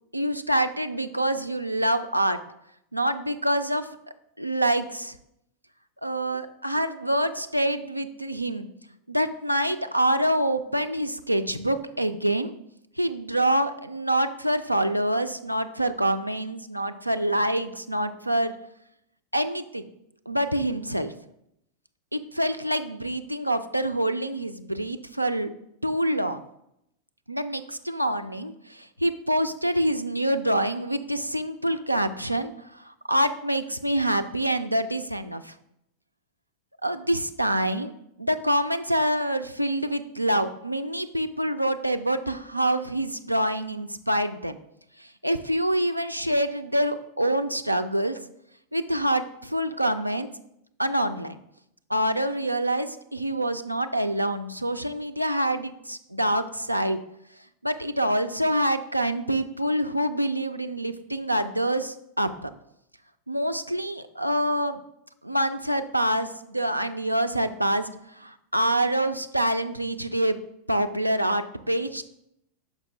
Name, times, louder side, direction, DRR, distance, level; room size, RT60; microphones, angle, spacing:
voice 1, 0.1-2.4 2.9-3.9 4.4-5.2 6.0-8.7 9.1-12.5 13.0-18.5 19.3-19.8 20.3-21.1 22.1-25.5 25.8-26.4 27.3-35.5 36.8-37.9 38.2-44.6 45.0-48.2 48.7-50.3 50.8-51.4 51.9-57.0 57.6-62.5 63.3-64.8 65.2-70.4 70.7-72.0, right 1 dB, 90° right, 9 dB, 0.4 m, -26 dB
6.3 x 5.1 x 3.1 m, 0.78 s
figure-of-eight pair, 90°, 0 cm